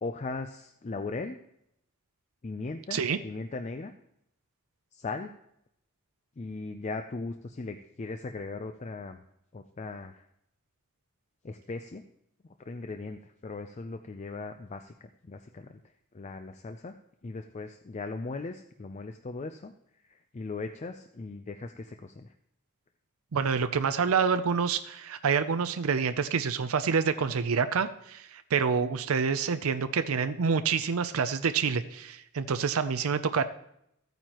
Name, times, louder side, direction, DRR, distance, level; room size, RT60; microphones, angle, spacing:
voice 1, 0.0-1.4 2.4-3.9 4.9-5.3 6.4-9.2 9.5-10.2 11.4-12.0 12.7-15.8 16.1-17.0 17.2-19.7 20.0-22.3, left 3 dB, 35° left, 7 dB, 0.4 m, -38 dB
voice 2, 23.3-33.4, right 6 dB, 90° right, 11 dB, 0.5 m, -27 dB
14.5 x 9.2 x 3.0 m, 0.76 s
head